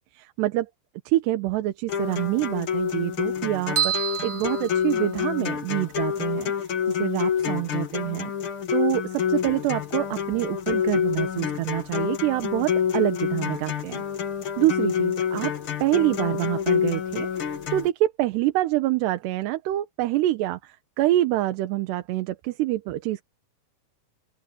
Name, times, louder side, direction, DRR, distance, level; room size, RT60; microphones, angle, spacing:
voice 1, 0.1-0.7 1.1-8.3 8.7-14.0 14.6-15.5 15.8-17.3 17.7-23.2, right 15 dB, 85° right, 3.2 m, -26 dB
sound 1, 1.9-17.9, left 8 dB, 60° left, 1.4 m, -27 dB
sound 2, 3.8-5.5, right 9 dB, 45° right, 1.9 m, -29 dB
open air
omnidirectional pair, 4.7 m